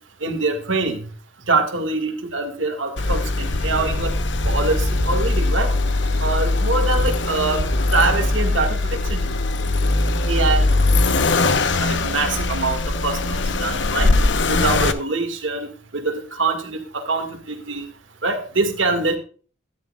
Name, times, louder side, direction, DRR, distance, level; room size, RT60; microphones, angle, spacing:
voice 1, 0.2-1.0 1.5-4.1 4.4-5.7 6.2-7.7 7.9-9.3 10.2-10.6 11.2-11.3 11.8-14.1 14.5-15.7 15.9-17.9 18.2-19.2, right 3 dB, 80° right, 5 dB, 2.0 m, -24 dB
Accelerating revving vroom, 3.0-14.9, left 2 dB, 65° left, 1.0 m, -21 dB
14.0 x 11.0 x 2.4 m, 0.40 s
head